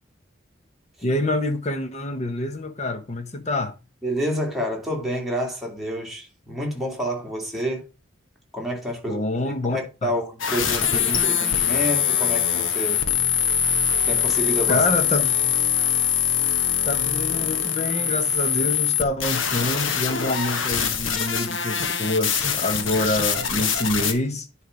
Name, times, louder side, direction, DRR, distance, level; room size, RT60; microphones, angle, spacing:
voice 1, 1.0-3.8 9.1-10.1 14.7-15.3 16.8-24.5, left 2 dB, 35° left, 1.0 m, -26 dB
voice 2, 4.0-7.9 8.5-13.0 14.1-14.8, equal, ahead, 2.3 m, -29 dB
sound 1, 10.4-24.1, left 8 dB, 75° left, 1.1 m, -23 dB
9.9 x 3.3 x 5.2 m
head